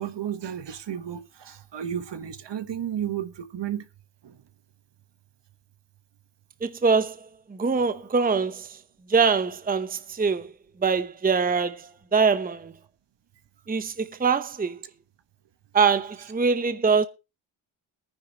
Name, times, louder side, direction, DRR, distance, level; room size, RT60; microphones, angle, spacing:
voice 1, 0.0-3.8 4.2-4.4, right 9 dB, 60° right, 1.3 m, -33 dB
voice 2, 6.6-8.8 9.1-10.5 10.8-12.7 13.7-14.8 15.7-17.1, right 5 dB, 20° right, 0.8 m, -23 dB
20.5 x 9.8 x 2.9 m
cardioid pair, 80°, 49 cm